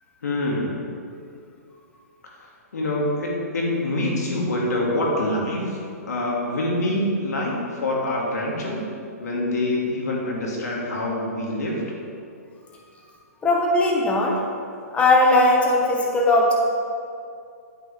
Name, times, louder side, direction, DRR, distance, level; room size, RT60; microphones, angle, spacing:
voice 1, 0.2-0.7 2.7-5.8 6.1-8.9 9.2-11.8, left 1 dB, 75° left, -3 dB, 2.3 m, -25 dB
voice 2, 13.4-14.4 14.9-16.5, left 2 dB, 15° left, -2 dB, 1.5 m, -18 dB
9.2 x 8.3 x 3.5 m, 2.4 s
hypercardioid pair, 130°, 9 cm